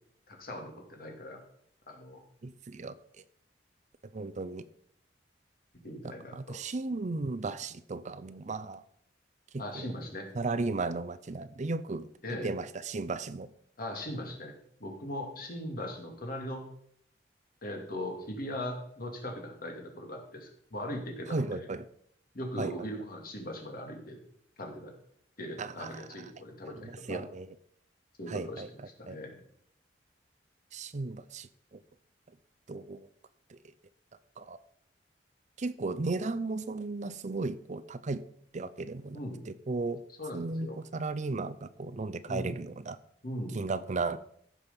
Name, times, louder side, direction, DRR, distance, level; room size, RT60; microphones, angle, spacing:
voice 1, 0.3-1.4 1.9-2.2 5.8-6.6 9.6-10.3 12.2-12.5 13.8-16.6 17.6-21.7 22.3-24.2 24.6-24.9 25.4-27.2 28.2-29.4 39.1-39.4 40.2-40.8 42.3-42.5 43.2-43.6, left 1 dB, 55° left, 2 dB, 2.6 m, -39 dB
voice 2, 2.4-3.0 4.1-4.6 6.0-8.8 9.5-9.9 10.4-12.1 12.4-13.5 21.3-21.9 22.6-22.7 25.6-25.9 26.8-27.5 28.3-28.7 29.1-29.2 30.7-31.8 32.7-33.0 33.5-33.6 34.4-34.6 35.6-38.2 38.5-39.2 39.5-40.0 40.3-43.0 43.5-44.2, right 3 dB, 40° right, 13 dB, 0.5 m, -35 dB
15.0 x 6.3 x 5.2 m, 0.67 s
head